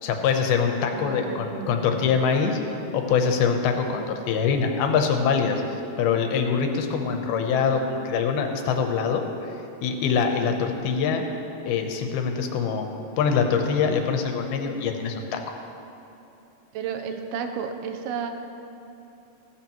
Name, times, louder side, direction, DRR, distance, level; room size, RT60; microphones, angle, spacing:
voice 1, 0.0-2.6 2.9-5.6 6.0-9.2 9.8-11.3 11.6-12.9 13.2-15.4, left 6 dB, 90° left, 4 dB, 2.9 m, -24 dB
voice 2, 0.9-2.2 10.4-10.6 16.7-18.3, right 6 dB, 90° right, 6 dB, 2.7 m, -33 dB
15.5 x 14.0 x 3.0 m, 2.8 s
omnidirectional pair, 4.3 m